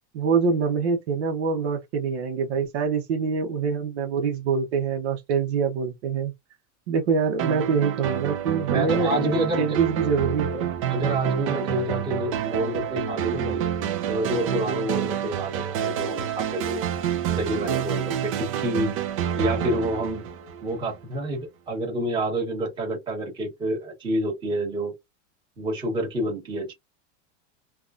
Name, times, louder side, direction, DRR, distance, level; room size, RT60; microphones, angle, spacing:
voice 1, 0.1-6.3 6.9-10.7, right 5 dB, 65° right, 0.9 m, -25 dB
sound 1, 7.4-20.9, right 9 dB, 30° right, 0.4 m, -28 dB
voice 2, 8.7-9.8 10.9-13.7 14.1-16.9 17.3-19.0 19.4-20.3 20.6-24.9 25.6-26.7, right 1 dB, 10° right, 1.3 m, -28 dB
3.5 x 2.3 x 2.5 m
supercardioid pair, 180°, 36 cm